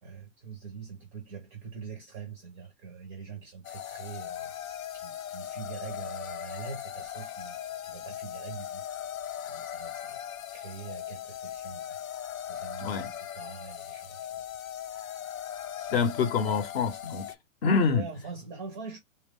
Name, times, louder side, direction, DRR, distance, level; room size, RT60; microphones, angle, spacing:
voice 1, 0.0-9.1 9.5-10.2 10.5-12.0 12.3-14.4 15.8-16.1 17.9-19.0, right 5 dB, 10° right, 0.4 m, -44 dB
sound 1, 3.6-17.3, left 10 dB, 75° left, 0.7 m, -39 dB
voice 2, 15.9-17.3 17.6-18.1, left 5 dB, 45° left, 0.8 m, -26 dB
3.2 x 2.4 x 3.5 m
hypercardioid pair, 155°, 41 cm